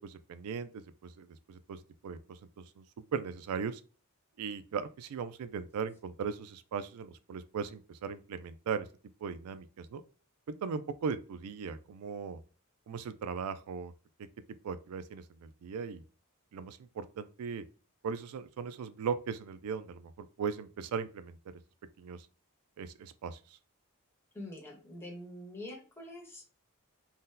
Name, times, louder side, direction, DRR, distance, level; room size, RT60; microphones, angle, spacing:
voice 1, 0.0-2.4 2.8-2.9 3.1-3.8 4.4-8.9 9.2-10.0 10.5-12.4 12.9-13.9 14.6-16.0 16.5-17.6 18.0-21.6 22.0-22.3 22.8-23.4, right 6 dB, 85° right, 0.3 m, -38 dB
voice 2, 24.3-26.4, left 1 dB, 10° left, 0.9 m, -45 dB
2.7 x 2.1 x 3.7 m
head